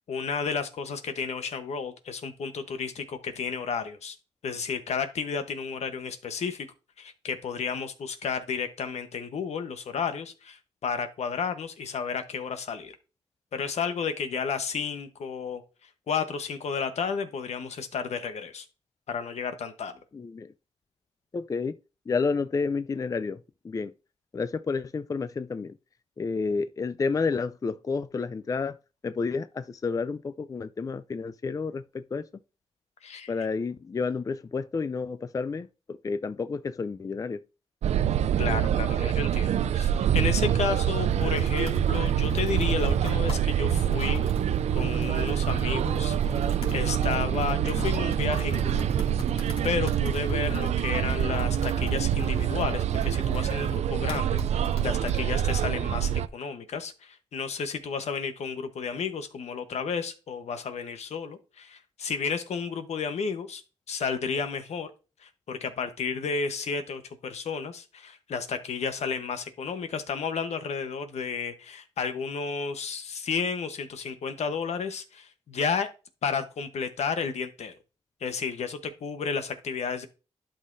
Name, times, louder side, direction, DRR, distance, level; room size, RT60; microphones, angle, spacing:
voice 1, 0.1-4.1 4.4-6.7 7.0-12.9 13.5-18.7 19.1-19.9 33.0-33.3 38.4-44.2 44.7-48.9 49.3-63.6 63.9-64.9 65.2-75.9 76.2-77.7 78.2-80.1, left 5 dB, 75° left, 1.1 m, -32 dB
voice 2, 20.1-20.5 21.3-21.8 22.1-23.9 24.3-25.7 26.2-28.8 29.0-32.3 33.3-37.4, left 4 dB, 30° left, 0.4 m, -30 dB
sound 1, 37.8-56.3, right 10 dB, 75° right, 0.4 m, -26 dB
Computer keyboard, 40.6-55.2, left 1 dB, 60° left, 2.4 m, -39 dB
11.5 x 5.6 x 2.6 m
cardioid pair, 80°, 11 cm